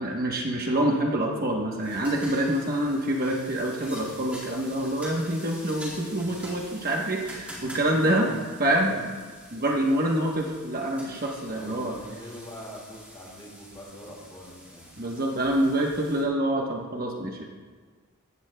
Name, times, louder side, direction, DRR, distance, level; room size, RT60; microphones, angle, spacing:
voice 1, 0.0-8.3 8.6-9.0 9.5-11.9 15.0-17.4, right 1 dB, 40° right, 0 dB, 1.1 m, -26 dB
sound 1, 1.8-16.2, equal, 5° right, 2.0 m, -46 dB
voice 2, 7.6-8.4 8.9-9.1 11.5-15.0, equal, 20° left, -3 dB, 2.8 m, -43 dB
15.5 x 14.0 x 2.3 m, 1.5 s
head